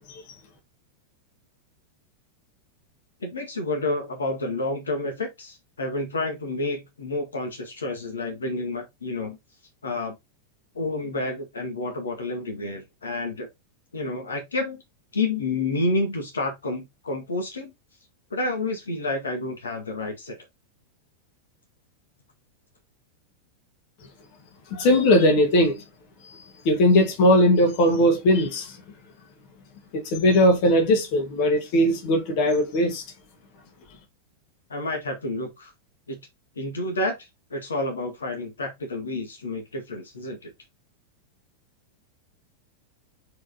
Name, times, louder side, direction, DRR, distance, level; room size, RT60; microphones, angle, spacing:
voice 1, 3.2-9.4 9.8-10.2 10.8-13.5 13.9-14.8 15.1-17.7 18.3-20.4 34.7-35.7 36.1-36.2 36.6-37.2 37.5-40.5, left 2 dB, 70° left, 1.7 m, -29 dB
voice 2, 24.7-25.8 26.6-28.8 29.9-33.0, left 1 dB, 45° left, 2.1 m, -19 dB
4.8 x 4.6 x 4.2 m
figure-of-eight pair, 90°, 0 cm